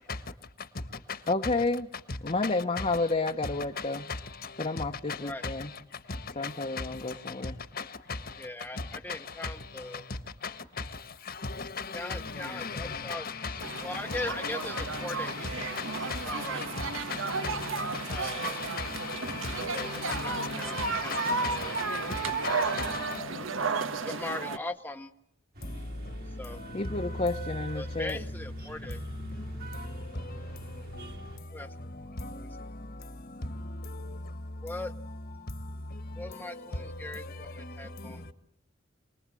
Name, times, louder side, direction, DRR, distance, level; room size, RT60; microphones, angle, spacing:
voice 1, 1.3-1.9 2.2-4.0 4.6-5.7 6.4-7.5 26.7-28.2 38.0-38.2, left 3 dB, 35° left, 1.0 m, -30 dB
voice 2, 8.4-10.0 11.9-13.3 13.8-14.7 15.0-15.8 16.2-16.6 18.1-18.5 19.4-21.3 21.6-21.8 24.0-25.1 26.4-26.6 27.7-29.0 31.5-31.7 32.2-32.5 34.6-34.9 36.2-38.3, left 2 dB, 10° left, 1.0 m, -40 dB
voice 3, 11.4-13.8 14.1-15.4 15.7-16.4 16.8-23.2, left 5 dB, 50° left, 1.6 m, -37 dB
sound 1, 13.6-24.6, right 4 dB, 85° right, 1.4 m, -33 dB
sound 2, 25.5-31.4, right 1 dB, 50° right, 2.8 m, -46 dB
27.5 x 20.5 x 7.6 m
head